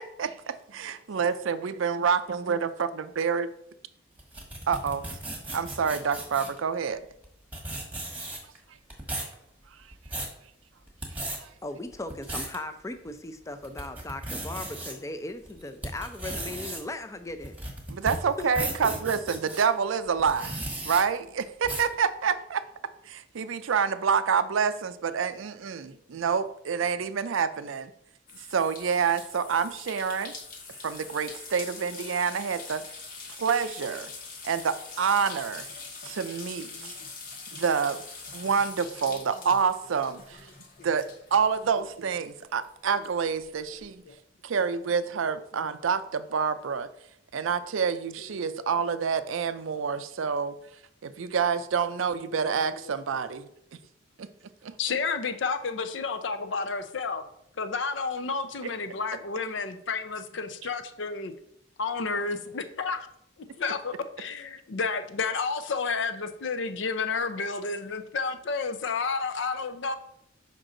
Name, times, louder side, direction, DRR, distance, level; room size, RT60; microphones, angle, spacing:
voice 1, 0.2-3.5 4.7-5.0 5.5-7.0 11.4-11.5 17.9-20.5 20.8-22.6 23.1-27.9 28.3-30.3 30.8-32.8 33.3-34.1 34.4-35.7 36.0-37.0 37.5-38.0 38.3-40.4 40.8-41.1 41.3-44.0 44.4-46.9 47.3-50.6 51.0-53.5 54.2-54.3 54.6-54.7, right 6 dB, 75° right, 12 dB, 0.5 m, -27 dB
sound 1, 4.2-6.6 7.2-7.3 7.5-8.6 8.9-9.3 9.8-10.4 10.9-11.4 11.9-12.6 13.1-13.2 13.6-14.9 15.5-19.6 20.2-21.0 21.6-21.9, right 1 dB, 10° right, 1.2 m, -35 dB
voice 2, 11.6-17.6 18.4-18.5 18.8-19.0, left 2 dB, 15° left, 9 dB, 0.4 m, -37 dB
sound 2, 28.3-42.3 42.6-43.9, left 4 dB, 45° left, 1.1 m, -44 dB
voice 3, 43.8-44.1 52.2-52.3 52.9-53.2 54.8-57.2 57.6-61.3 61.8-63.1 63.6-69.9, left 4 dB, 65° left, 10 dB, 0.6 m, -31 dB
6.3 x 5.3 x 3.8 m, 0.74 s
head